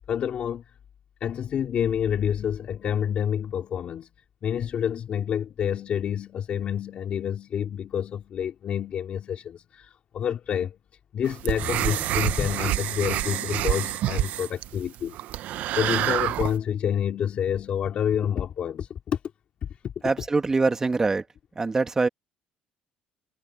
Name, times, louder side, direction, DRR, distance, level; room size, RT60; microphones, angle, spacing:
voice 1, 0.1-0.6 1.2-4.1 4.4-10.8 11.1-15.2 15.7-19.2 19.6-19.9, left 9 dB, 50° left, 2.4 m, -28 dB
sound 1, 2.4-3.2 4.2-4.3 4.6-6.1 6.5-6.6 7.1-7.2 9.3-9.4 11.4-12.6, left 5 dB, 30° left, 2.7 m, -39 dB
sound 2, 11.2-16.6, right 14 dB, 65° right, 0.6 m, -27 dB
voice 2, 20.0-21.3 21.6-22.1, right 3 dB, 20° right, 1.8 m, -23 dB
cardioid pair, 115°, 3 cm